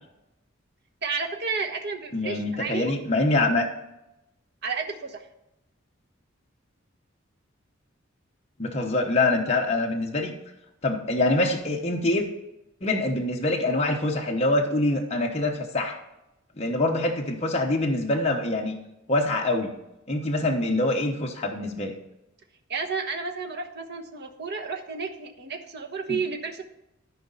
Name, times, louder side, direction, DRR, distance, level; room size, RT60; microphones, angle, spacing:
voice 1, 1.0-2.9 4.6-5.2 22.7-26.6, right 4 dB, 55° right, 4 dB, 1.2 m, -31 dB
voice 2, 2.1-3.6 8.6-10.3 10.8-12.3 12.8-16.0 16.6-18.7 19.1-19.7 20.1-21.9 26.1-26.2, left 2 dB, 35° left, 0 dB, 1.0 m, -25 dB
13.5 x 5.1 x 4.0 m, 0.90 s
head